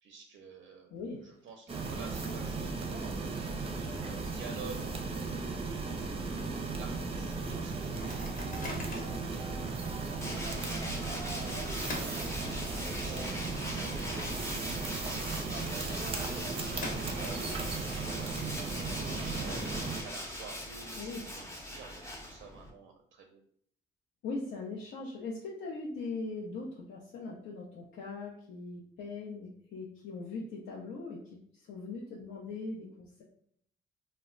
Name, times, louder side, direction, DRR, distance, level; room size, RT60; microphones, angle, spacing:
voice 1, 0.0-16.5 16.9-23.4, right 5 dB, 85° right, 3 dB, 0.4 m, -51 dB
Microwave oven, 1.0-1.5 1.8-1.9 2.2-5.3 5.7-5.8 6.1-6.4 6.9-7.0 7.7-9.3 9.9-10.0 11.1-13.0 13.4-14.9 15.2-15.3 16.2-17.6, left 1 dB, 45° left, 0.9 m, -46 dB
sound 1, 1.7-20.0, right 3 dB, 30° right, 0.5 m, -36 dB
Tools, 10.2-22.7, left 1 dB, 15° left, 0.6 m, -41 dB
voice 2, 24.2-33.2, left 3 dB, 75° left, -2 dB, 0.5 m, -40 dB
2.1 x 2.1 x 3.7 m, 0.66 s
cardioid pair, 90°, 20 cm